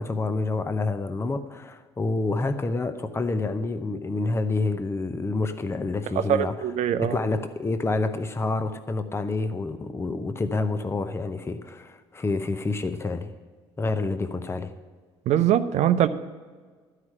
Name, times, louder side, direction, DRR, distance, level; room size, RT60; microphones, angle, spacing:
voice 1, 0.0-6.5 6.9-13.3 13.8-14.7, left 3 dB, 20° left, 9 dB, 0.8 m, -28 dB
voice 2, 6.2-7.2 15.3-16.1, right 10 dB, 55° right, 12 dB, 0.7 m, -22 dB
12.0 x 4.9 x 8.7 m, 1.5 s
hypercardioid pair, 60°, 14 cm